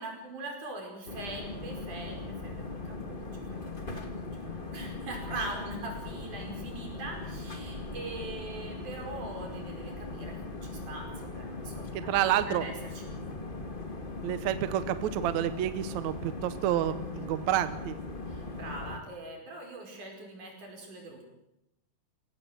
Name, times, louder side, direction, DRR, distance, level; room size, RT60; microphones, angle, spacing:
voice 1, 0.0-12.7 13.0-13.5 18.3-21.3, right 2 dB, 55° right, 2 dB, 6.4 m, -42 dB
sound 1, 1.1-19.0, left 3 dB, 25° left, 1.1 m, -39 dB
voice 2, 11.9-12.6 14.2-18.0, right 12 dB, 70° right, 12 dB, 1.8 m, -29 dB
22.0 x 17.5 x 7.8 m, 0.88 s
omnidirectional pair, 4.2 m